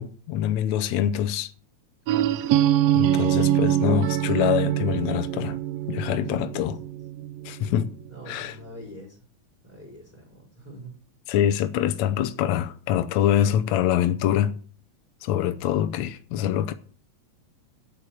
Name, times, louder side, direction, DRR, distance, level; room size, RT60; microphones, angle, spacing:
voice 1, 0.0-1.5 3.0-5.6 5.9-6.8 7.5-7.9 8.3-8.6 11.3-14.5 15.2-16.7, left 10 dB, 80° left, 2.1 m, -24 dB
voice 2, 2.1-2.6 5.9-7.3 8.1-9.2 9.6-10.9, equal, 15° left, 4.8 m, -45 dB
sound 1, 2.1-7.8, right 12 dB, 75° right, 1.7 m, -24 dB
8.7 x 8.2 x 9.0 m
omnidirectional pair, 3.3 m